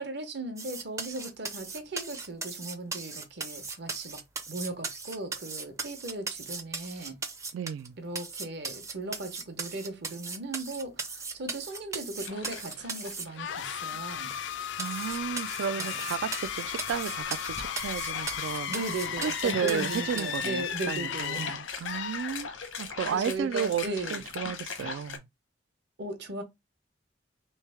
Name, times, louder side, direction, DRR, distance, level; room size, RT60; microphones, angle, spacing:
voice 1, 0.0-4.2 4.5-7.2 8.0-14.3 15.8-16.0 18.7-21.6 23.1-24.2 26.0-26.4, right 2 dB, 55° right, 0.9 m, -37 dB
sound 1, 0.6-7.9 8.1-13.2 13.8-13.9 14.3-14.4 14.8-20.4, right 4 dB, 15° right, 0.4 m, -38 dB
voice 2, 7.5-8.0 13.9-14.0 14.7-18.7 19.2-22.5 22.8-25.3, right 8 dB, 80° right, 0.3 m, -33 dB
sound 2, 12.2-13.6 13.9-14.0 15.1-25.2, left 5 dB, 90° left, 0.9 m, -41 dB
sound 3, 13.4-22.9, left 9 dB, 65° left, 0.3 m, -35 dB
3.2 x 3.1 x 3.4 m
head